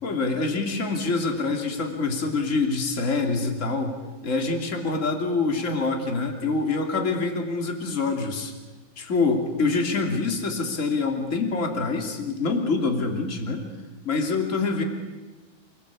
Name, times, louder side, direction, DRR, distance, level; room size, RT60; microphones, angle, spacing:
voice 1, 0.0-4.0 4.2-8.5 9.0-13.6 14.0-14.8, left 3 dB, 20° left, 3 dB, 2.6 m, -25 dB
30.0 x 20.0 x 8.6 m, 1.2 s
omnidirectional pair, 4.7 m